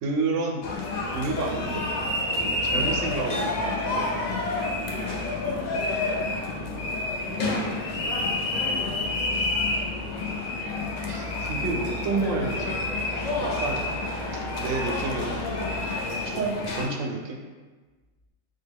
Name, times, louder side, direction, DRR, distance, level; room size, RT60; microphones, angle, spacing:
voice 1, 0.0-1.9 2.4-4.1 11.1-12.8 13.4-13.8 14.3-15.5 16.3-17.4, right 3 dB, 80° right, 2 dB, 0.9 m, -30 dB
sound 1, 0.6-16.9, left 2 dB, 70° left, 0.4 m, -29 dB
voice 2, 4.5-9.2, equal, 30° left, -7 dB, 0.6 m, -40 dB
4.0 x 2.1 x 3.4 m, 1.3 s
omnidirectional pair, 1.3 m